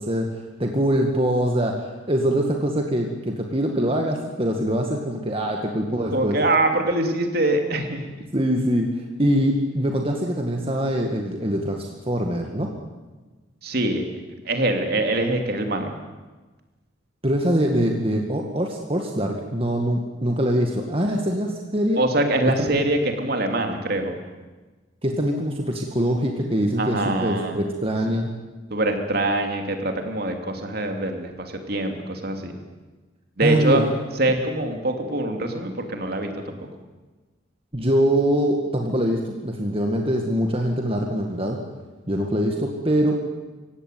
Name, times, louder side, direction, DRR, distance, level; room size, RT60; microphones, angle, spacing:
voice 1, 0.0-6.4 8.3-12.7 17.2-22.0 22.6-22.7 25.0-28.3 33.4-33.9 37.7-41.6 42.1-43.2, equal, 30° right, 2 dB, 2.0 m, -23 dB
voice 2, 6.1-8.1 13.6-14.0 14.4-15.9 22.0-24.2 26.8-27.6 28.7-32.5 33.4-33.8 34.2-36.7, right 2 dB, 50° right, 4 dB, 3.2 m, -24 dB
25.5 x 16.5 x 9.4 m, 1.3 s
head